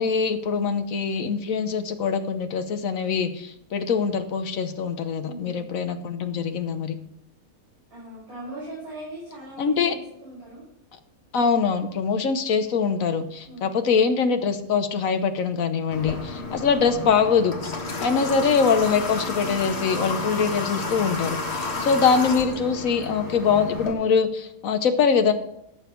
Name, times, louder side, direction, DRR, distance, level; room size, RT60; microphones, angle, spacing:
voice 1, 0.0-7.0 9.6-9.9 11.3-17.6 18.0-25.3, left 5 dB, 70° left, 8 dB, 1.4 m, -23 dB
voice 2, 5.2-5.6 7.9-10.6 13.4-13.7 16.3-16.6 18.1-18.4 21.6-21.9, right 1 dB, 75° right, -9 dB, 6.5 m, -40 dB
Water / Water tap faucet, 15.9-23.9, left 3 dB, 45° left, 1.9 m, -31 dB
16.0 x 7.2 x 4.5 m, 0.78 s
omnidirectional pair, 1.5 m